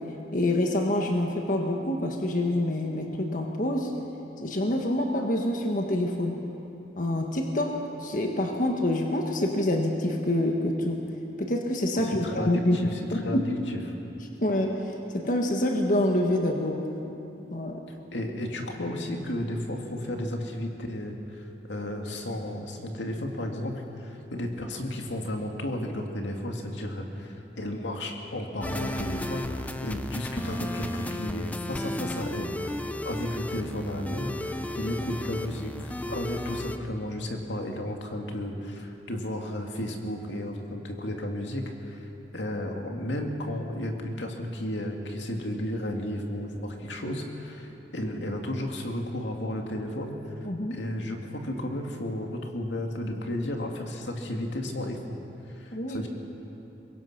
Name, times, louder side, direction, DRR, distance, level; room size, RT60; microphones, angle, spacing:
voice 1, 0.3-3.9 4.4-6.4 7.0-11.0 11.4-13.7 14.4-14.8 15.1-16.9 17.5-17.8 50.4-50.8 55.7-56.0, left 1 dB, 45° left, 2 dB, 1.6 m, -26 dB
voice 2, 12.0-13.8 17.9-42.1 42.3-50.2 50.7-55.0 55.6-56.1, left 1 dB, 85° left, 2 dB, 2.3 m, -33 dB
sound 1, 28.6-36.8, left 1 dB, 10° left, 0.7 m, -34 dB
24.0 x 21.5 x 6.0 m, 2.8 s
head